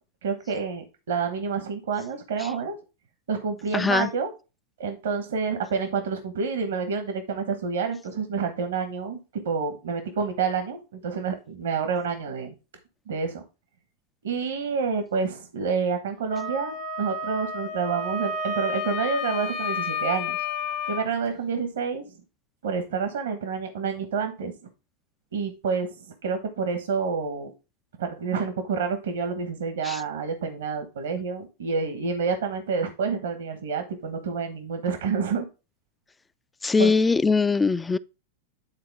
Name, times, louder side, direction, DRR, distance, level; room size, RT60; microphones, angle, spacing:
voice 1, 0.2-2.8 3.3-4.3 4.8-9.2 9.4-12.5 13.1-13.4 14.2-20.4 20.9-22.2 22.6-24.6 25.3-27.5 28.0-35.4 36.8-36.9, right 5 dB, 75° right, 1.2 m, -28 dB
voice 2, 3.7-4.1 29.8-30.0 36.6-38.0, left 4 dB, 15° left, 0.3 m, -21 dB
Wind instrument woodwind instrument, 16.3-21.1, left 4 dB, 50° left, 1.1 m, -31 dB
9.7 x 3.8 x 3.5 m
hypercardioid pair, 105°, 0 cm